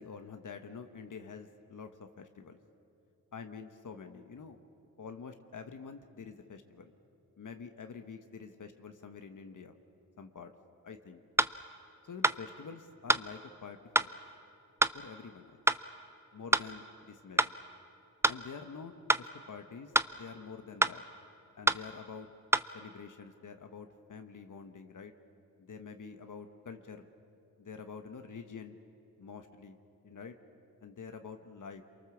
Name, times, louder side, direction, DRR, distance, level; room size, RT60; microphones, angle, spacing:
voice 1, 0.0-2.6 3.3-4.6 5.0-6.9 7.4-9.7 10.2-10.5 10.8-11.2 12.0-14.2 14.9-15.6 16.3-17.6 18.3-19.9 20.2-21.0 21.6-22.3 22.7-25.1 25.6-27.1 27.6-28.8 29.2-29.8 30.0-30.4 30.8-31.8, left 5 dB, 60° left, 6 dB, 1.3 m, -47 dB
sound 1, 11.4-11.6 12.2-12.4 13.1-13.3 14.0-14.1 14.8-15.0 15.7-15.8 16.5-16.7 17.4-17.5 18.2-18.4 19.1-19.3 20.0-20.1 20.8-21.0 21.7-21.8 22.5-22.7, right 1 dB, 10° right, 0.5 m, -26 dB
28.0 x 23.5 x 7.2 m, 2.7 s
cardioid pair, 80°, 35 cm